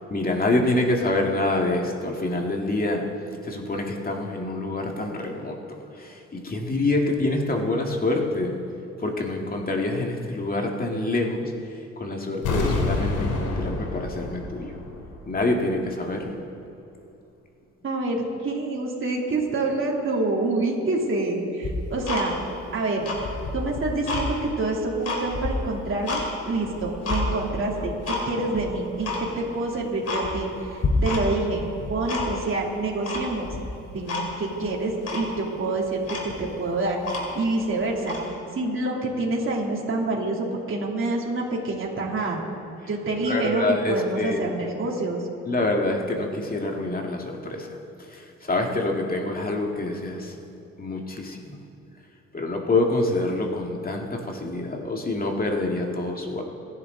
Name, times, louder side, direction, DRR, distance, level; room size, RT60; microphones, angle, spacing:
voice 1, 0.1-3.1 3.4-5.6 5.9-8.6 9.0-11.5 12.0-14.7 15.3-16.4 43.3-44.6 45.5-47.8 48.1-50.4 50.8-51.6 52.3-56.4, left 2 dB, 30° left, 1 dB, 2.1 m, -26 dB
sound 1, 12.4-15.3 15.6-15.7, left 2 dB, 90° left, 2.9 m, -28 dB
voice 2, 17.8-22.4 22.7-23.1 23.5-33.5 33.9-37.0 37.3-38.1 38.5-42.4 42.9-45.2, right 2 dB, 45° right, -3 dB, 3.2 m, -27 dB
Tick-tock, 21.6-22.6 23.0-24.3 24.7-26.3 26.6-27.2 27.7-28.2 28.5-28.6 29.0-29.2 29.6-29.7 30.0-30.6 30.8-31.5 31.7-32.5 33.1-33.6 34.1-34.3 34.6-34.7 35.0-35.3 35.8-35.9 36.0-37.5 38.0-38.3, left 3 dB, 50° left, 3.8 m, -29 dB
27.5 x 11.0 x 3.9 m, 2.8 s
cardioid pair, 90°, 30 cm